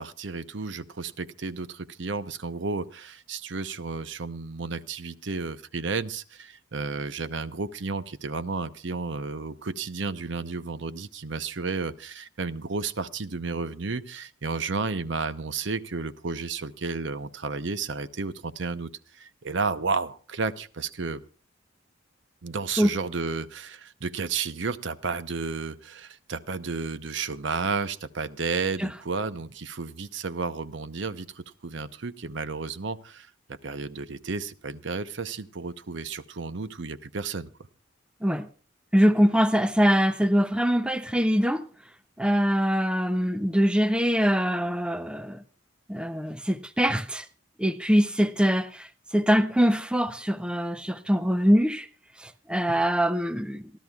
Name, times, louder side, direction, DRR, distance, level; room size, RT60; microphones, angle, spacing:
voice 1, 0.0-21.2 22.4-37.5, right 4 dB, 65° right, 0.8 m, -32 dB
voice 2, 38.9-41.7 42.2-45.4 45.9-47.3 47.6-51.9 52.2-53.7, equal, 5° right, 0.6 m, -23 dB
27.0 x 12.5 x 2.4 m
head